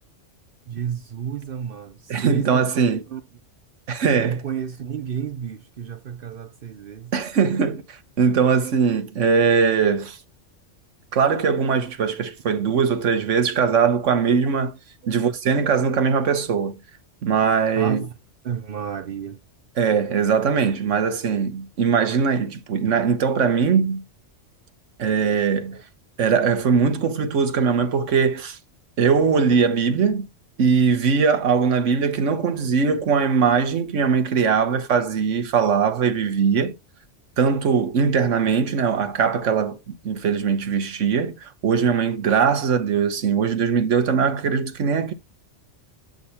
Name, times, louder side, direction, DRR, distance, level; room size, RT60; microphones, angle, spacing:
voice 1, 0.7-3.2 4.2-7.1 15.0-15.1 17.8-18.1 18.4-19.4 25.7-25.8, right 8 dB, 55° right, 0.7 m, -31 dB
voice 2, 2.1-3.0 3.9-4.4 7.1-10.2 11.1-14.7 15.1-16.8 17.2-18.0 19.8-24.0 25.0-25.8 26.2-28.6 29.0-30.3 30.6-36.7 37.4-45.1, right 6 dB, 75° right, 1.4 m, -21 dB
8.2 x 3.8 x 4.2 m
omnidirectional pair, 1.3 m